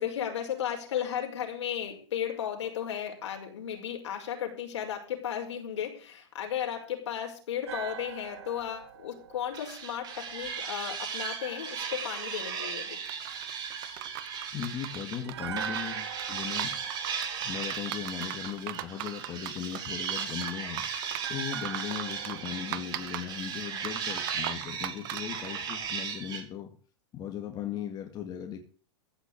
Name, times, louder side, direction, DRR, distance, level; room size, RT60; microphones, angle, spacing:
voice 1, 0.0-13.0, left 9 dB, 80° left, 2 dB, 5.4 m, -34 dB
sound 1, 7.7-10.8 15.2-18.5 21.1-24.3 24.6-24.7, right 8 dB, 70° right, 2.1 m, -43 dB
sound 2, 9.5-15.2 15.6-26.4, right 6 dB, 30° right, 3.1 m, -36 dB
sound 3, 13.1-25.9, right 16 dB, 50° right, 0.9 m, -41 dB
voice 2, 14.5-16.7 17.4-20.9 21.3-26.7 27.1-28.6, left 9 dB, 30° left, 3 dB, 2.3 m, -38 dB
15.0 x 5.9 x 8.8 m, 0.39 s
hypercardioid pair, 140°, 15 cm